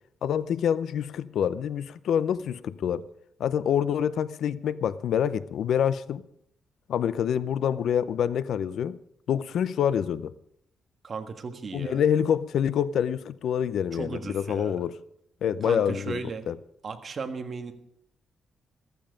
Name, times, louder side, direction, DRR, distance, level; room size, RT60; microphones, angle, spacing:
voice 1, 0.2-3.0 3.4-6.2 6.9-9.0 9.3-10.3 11.7-14.9 15.4-16.2 16.5-16.6, left 8 dB, 65° left, 0.6 m, -26 dB
voice 2, 11.0-12.0 13.9-14.8 15.6-16.5 16.8-17.7, right 5 dB, 35° right, 1.5 m, -36 dB
15.0 x 14.5 x 5.2 m
cardioid pair, 155°, 0 cm